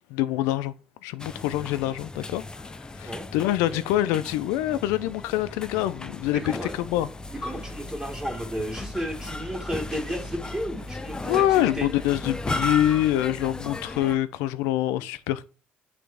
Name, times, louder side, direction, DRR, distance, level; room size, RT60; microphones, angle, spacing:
voice 1, 0.1-0.7 1.0-2.7 3.0-7.1 11.3-15.5, left 13 dB, 90° left, 0.4 m, -25 dB
sound 1, 1.2-14.2, left 2 dB, 20° left, 0.5 m, -36 dB
voice 2, 6.3-6.7 7.3-11.9, equal, 20° right, 2.0 m, -33 dB
8.6 x 3.4 x 3.4 m
supercardioid pair, 80°, 4 cm